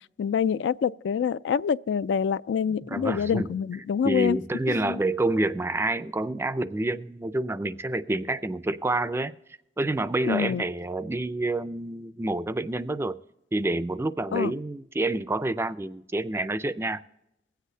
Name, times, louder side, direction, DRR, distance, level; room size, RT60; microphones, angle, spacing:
voice 1, 0.2-4.4 4.7-5.0 10.2-10.6 14.3-14.5, left 7 dB, 85° left, 0.3 m, -26 dB
voice 2, 2.9-3.5 4.0-9.3 9.8-13.2 13.5-17.0, right 2 dB, 15° right, 0.3 m, -28 dB
22.0 x 8.2 x 2.7 m
head